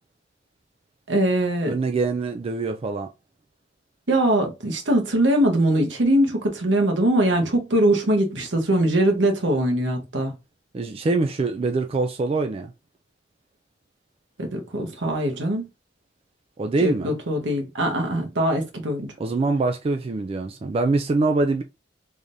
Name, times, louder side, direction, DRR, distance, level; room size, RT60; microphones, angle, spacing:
voice 1, 1.1-1.8 4.1-10.3 14.4-15.7 16.8-19.1, right 1 dB, 75° right, 1.1 m, -22 dB
voice 2, 1.7-3.1 10.7-12.7 16.6-17.2 19.2-21.6, right 3 dB, 30° right, 0.3 m, -24 dB
3.6 x 3.3 x 2.6 m
head